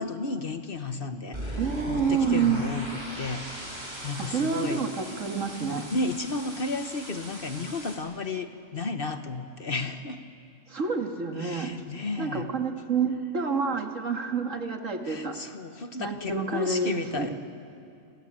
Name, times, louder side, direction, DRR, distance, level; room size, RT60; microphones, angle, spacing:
voice 1, 0.0-5.2 5.9-10.2 11.3-12.5 15.0-17.3, left 3 dB, 45° left, 8 dB, 1.2 m, -33 dB
sound 1, 1.3-8.0, right 1 dB, 35° right, 4.7 m, -39 dB
voice 2, 1.6-2.6 4.2-5.9 10.7-11.7 12.2-15.4 16.0-17.3, right 5 dB, 70° right, 4 dB, 2.3 m, -28 dB
29.0 x 21.5 x 8.9 m, 2.5 s
omnidirectional pair, 1.4 m